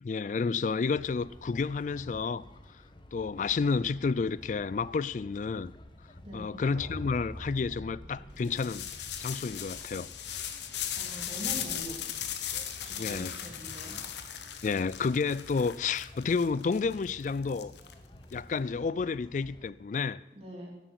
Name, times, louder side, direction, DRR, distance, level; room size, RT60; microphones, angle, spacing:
voice 1, 0.0-2.4 3.1-5.7 6.3-10.5 13.0-13.4 14.6-17.7 18.3-20.2, left 5 dB, 40° left, 0.3 m, -31 dB
sound 1, 0.9-19.7, left 1 dB, 25° left, 0.8 m, -52 dB
voice 2, 6.2-6.6 10.6-12.0 12.8-14.0 20.3-20.7, equal, 35° right, 3.3 m, -43 dB
sound 2, 6.4-10.4, equal, 80° right, 3.5 m, -46 dB
sound 3, 8.4-18.3, left 9 dB, 70° left, 1.0 m, -38 dB
10.5 x 8.1 x 8.1 m
head